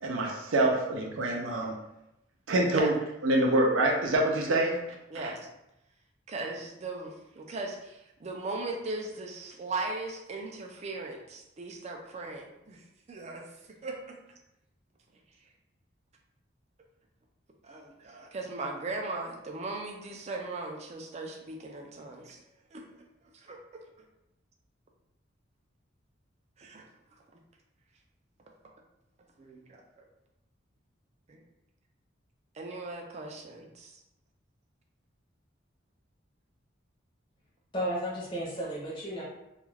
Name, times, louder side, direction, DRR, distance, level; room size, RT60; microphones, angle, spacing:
voice 1, 0.0-1.7 2.5-2.9 3.2-4.8 5.2-5.3, right 1 dB, 85° right, 0 dB, 0.5 m, -26 dB
voice 2, 5.1-5.4 6.3-14.2 17.6-22.4 22.7-23.0 23.3-23.6 26.6-26.8 29.4-30.1 31.3-31.4 32.5-34.0, right 3 dB, 35° right, 1 dB, 0.4 m, -38 dB
voice 3, 37.7-39.2, equal, 25° left, -6 dB, 0.6 m, -33 dB
2.3 x 2.2 x 3.2 m, 0.87 s
head